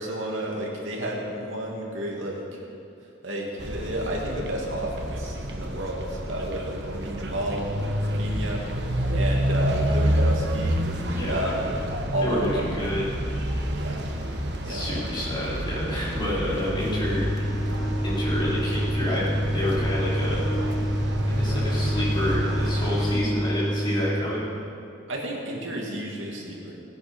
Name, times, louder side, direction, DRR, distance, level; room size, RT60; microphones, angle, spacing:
voice 1, 0.0-2.6 3.2-7.7 8.0-8.6 9.1-10.8 11.3-11.6 12.1-12.7 13.7-14.1 14.7-15.1 25.1-26.8, right 1 dB, 80° right, -2 dB, 2.5 m, -31 dB
sound 1, 3.6-23.2, equal, 55° right, 1.3 m, -29 dB
voice 2, 11.1-11.6 12.2-13.1 14.6-17.3 18.0-20.4 21.3-24.4, left 1 dB, 25° left, -8 dB, 4.3 m, -29 dB
sound 2, 16.6-24.3, equal, 5° right, 4.2 m, -27 dB
18.0 x 10.0 x 5.3 m, 2.6 s
head